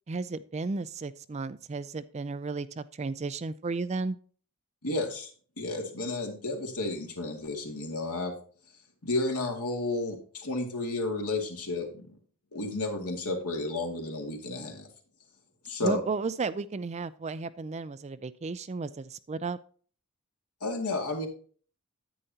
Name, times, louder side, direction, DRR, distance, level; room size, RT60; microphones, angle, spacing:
voice 1, 0.1-4.2 15.8-19.6, right 4 dB, 30° right, 14 dB, 0.4 m, -33 dB
voice 2, 4.8-5.3 5.6-8.3 9.0-12.2 12.5-14.9 15.7-16.0 20.6-21.3, left 2 dB, 85° left, 2 dB, 2.2 m, -32 dB
10.0 x 9.0 x 2.8 m, 0.43 s
head